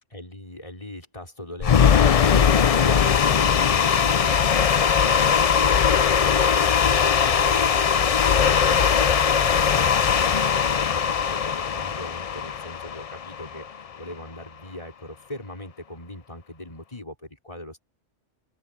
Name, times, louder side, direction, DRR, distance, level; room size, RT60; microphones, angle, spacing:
voice 1, 0.1-17.8, left 1 dB, 25° left, 5.1 m, -39 dB
sound 1, 1.6-13.8, left 7 dB, 50° left, 0.4 m, -20 dB
open air
omnidirectional pair, 1.2 m